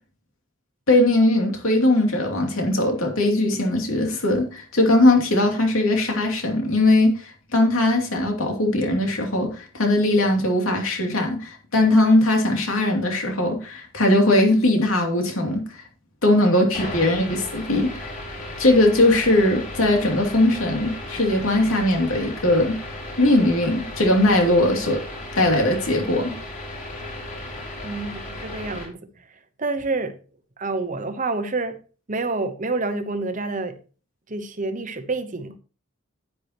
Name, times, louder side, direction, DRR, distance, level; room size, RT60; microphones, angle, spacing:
voice 1, 0.9-15.8 16.2-18.2 18.6-22.8 23.2-25.0 25.3-26.3, left 1 dB, 80° left, 2.8 m, -20 dB
sound 1, 16.7-28.9, left 1 dB, 40° left, 4.8 m, -35 dB
voice 2, 27.8-30.2 30.6-31.8 32.1-33.8 34.3-35.6, right 3 dB, 35° right, 0.9 m, -28 dB
10.0 x 9.4 x 3.0 m
head